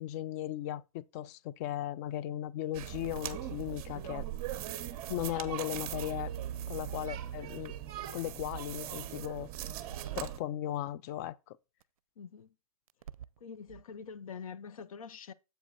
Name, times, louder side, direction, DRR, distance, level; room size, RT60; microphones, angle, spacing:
voice 1, 0.0-4.3 5.1-6.3 6.7-7.7 8.1-9.5 10.2-11.6, left 13 dB, 30° left, 0.3 m, -37 dB
sound 1, 2.7-10.4, right 12 dB, 30° right, 0.8 m, -41 dB
sound 2, 3.0-3.7 4.4-4.5 4.9-5.0 5.9-7.6 8.5-8.6 9.0-9.6 9.9-10.3 11.8-11.9 12.9-13.4 13.7-13.8, right 9 dB, 70° right, 0.5 m, -42 dB
voice 2, 12.2-12.5 13.4-15.3, left 6 dB, 70° left, 0.7 m, -45 dB
7.7 x 5.1 x 3.9 m
hypercardioid pair, 130°, 19 cm